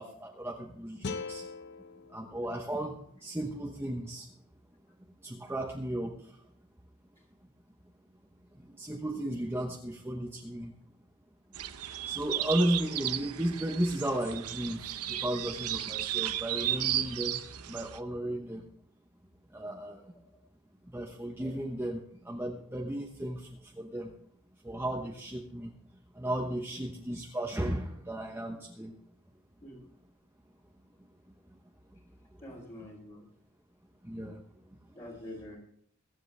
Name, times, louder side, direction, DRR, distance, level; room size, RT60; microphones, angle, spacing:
voice 1, 0.0-1.5 2.1-4.3 5.2-6.4 8.5-10.8 11.8-18.7 19.5-20.1 20.9-24.2 24.6-25.8 26.1-28.9 31.5-31.6 34.0-34.4 34.7-35.0, right 1 dB, 10° right, 1 dB, 1.0 m, -35 dB
sound 1, 1.0-4.1, left 4 dB, 50° left, 0.7 m, -43 dB
sound 2, 11.5-18.0, right 12 dB, 80° right, 0.8 m, -34 dB
voice 2, 32.4-33.2 34.9-35.6, left 1 dB, 30° left, -6 dB, 3.3 m, -46 dB
23.0 x 7.9 x 3.4 m, 0.65 s
head